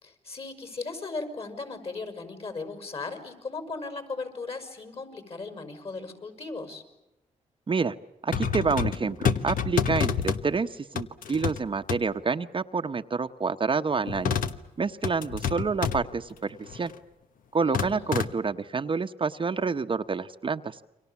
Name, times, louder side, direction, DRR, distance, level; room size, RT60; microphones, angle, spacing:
voice 1, 0.0-6.8 17.6-18.1, left 3 dB, 45° left, 7 dB, 5.8 m, -37 dB
voice 2, 8.2-14.4 14.8-16.9 17.5-20.8, right 5 dB, 40° right, 7 dB, 0.9 m, -28 dB
sound 1, 8.3-10.5 11.0-11.6 11.9-12.0 14.1-14.6 15.0-16.1 16.6-16.9 17.7-18.3, left 7 dB, 85° left, 1.2 m, -28 dB
29.5 x 24.5 x 7.2 m, 0.93 s
cardioid pair, 85°, 14 cm